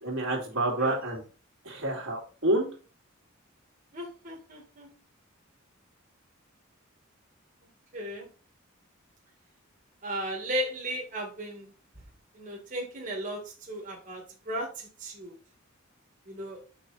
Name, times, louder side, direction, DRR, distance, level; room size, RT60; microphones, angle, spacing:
voice 1, 0.0-1.2 1.6-2.7, right 1 dB, 70° right, -1 dB, 2.5 m, -28 dB
voice 2, 3.9-4.9 7.9-8.3 10.0-11.7 12.3-15.4 16.3-16.6, right 1 dB, 40° right, -1 dB, 2.1 m, -36 dB
5.6 x 5.5 x 4.2 m, 0.36 s
head